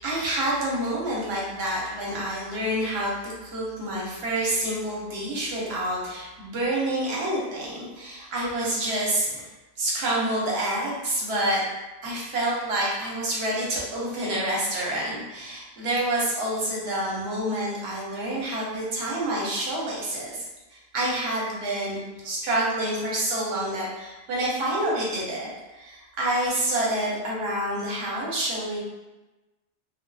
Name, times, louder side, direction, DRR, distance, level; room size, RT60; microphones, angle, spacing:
voice 1, 0.0-9.4 9.8-11.6 12.0-20.4 20.7-22.0 22.2-28.8, right 1 dB, 75° right, -5 dB, 0.9 m, -28 dB
2.6 x 2.1 x 2.2 m, 1.1 s
omnidirectional pair, 1.1 m